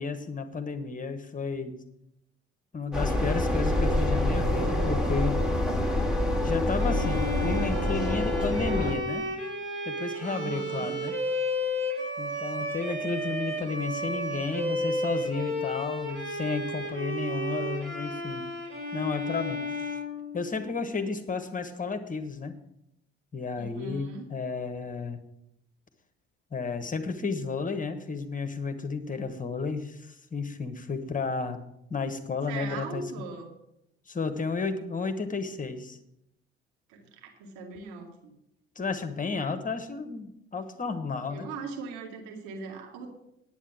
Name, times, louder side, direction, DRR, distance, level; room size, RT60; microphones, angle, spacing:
voice 1, 0.0-1.8 2.7-5.4 6.4-9.3 9.8-11.1 12.2-18.4 18.9-20.0 20.3-22.6 23.3-25.2 26.5-31.6 31.9-33.0 34.1-36.0 38.7-41.5, left 4 dB, 25° left, 9 dB, 1.3 m, -32 dB
sound 1, 2.9-9.0, left 1 dB, ahead, 2.1 m, -26 dB
Bowed string instrument, 6.7-20.8, left 1 dB, 40° right, 5.3 m, -33 dB
voice 2, 10.2-11.0 23.6-24.3 32.5-33.5 36.9-38.3 41.3-43.1, right 4 dB, 65° right, 2 dB, 2.4 m, -40 dB
9.8 x 9.1 x 6.3 m, 0.81 s
figure-of-eight pair, 55°, 32 cm